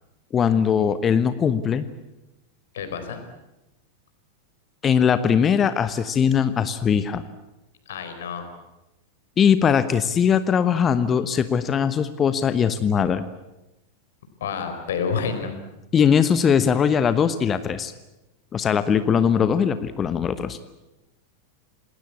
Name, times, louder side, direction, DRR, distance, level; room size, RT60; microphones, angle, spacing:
voice 1, 0.3-1.9 4.8-7.2 9.4-13.2 15.9-17.9 18.5-20.6, left 7 dB, 25° left, 13 dB, 1.1 m, -20 dB
voice 2, 2.7-3.2 7.9-8.5 14.4-15.5, left 6 dB, 60° left, 7 dB, 4.3 m, -28 dB
28.0 x 19.5 x 8.6 m, 0.97 s
figure-of-eight pair, 90°, 0 cm